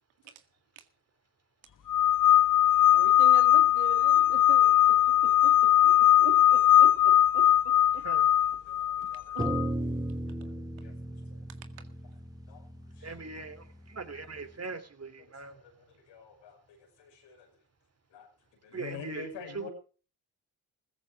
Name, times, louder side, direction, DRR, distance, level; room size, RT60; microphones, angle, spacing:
sound 1, 1.9-9.7, left 12 dB, 45° left, 1.1 m, -21 dB
voice 1, 2.9-8.1 8.5-8.6 9.3-9.5 11.5-11.7, right 10 dB, 85° right, 2.1 m, -43 dB
voice 2, 8.7-9.3 10.4-10.5 10.8-10.9 11.3-11.4 12.5-12.6 12.9-13.1 14.2-14.3 15.2-15.7 16.1-17.5 18.1-18.3 18.6-19.7, left 6 dB, 85° left, 6.0 m, -47 dB
sound 2, 9.4-13.9, right 1 dB, 10° right, 2.2 m, -35 dB
voice 3, 13.0-13.6 13.9-15.5 18.7-19.3 19.5-19.7, right 4 dB, 35° right, 3.1 m, -40 dB
16.0 x 14.0 x 4.9 m
supercardioid pair, 50°, 44 cm